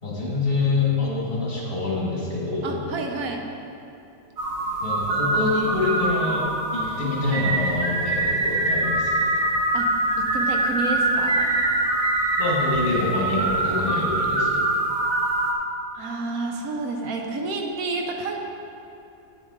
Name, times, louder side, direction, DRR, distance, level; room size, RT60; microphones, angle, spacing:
voice 1, 0.0-2.8 4.8-6.5 6.7-9.3 12.4-14.6, left 3 dB, 40° left, -6 dB, 2.0 m, -26 dB
voice 2, 2.6-3.4 9.7-9.9 10.2-11.5 15.9-18.4, right 3 dB, 75° right, 2 dB, 1.2 m, -29 dB
sound 1, 4.4-15.5, right 2 dB, 55° right, 1.1 m, -24 dB
9.5 x 7.1 x 3.7 m, 2.7 s
omnidirectional pair, 1.5 m